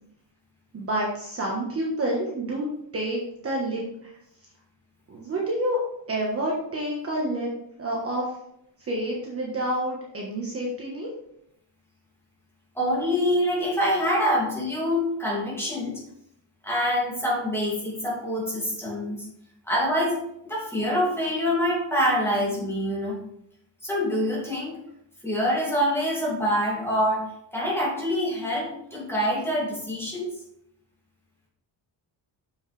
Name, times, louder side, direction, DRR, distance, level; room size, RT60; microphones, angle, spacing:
voice 1, 0.7-2.7 2.9-4.1 5.1-5.8 6.1-7.5 7.8-8.3 8.8-11.1, right 1 dB, 30° right, -3 dB, 1.3 m, -28 dB
voice 2, 12.8-16.0 16.6-19.3 19.7-20.2 20.4-23.2 23.8-24.8 25.2-27.3 27.5-30.3, equal, 5° left, -5 dB, 2.4 m, -25 dB
7.2 x 6.3 x 3.3 m, 0.76 s
cardioid pair, 170°, 46 cm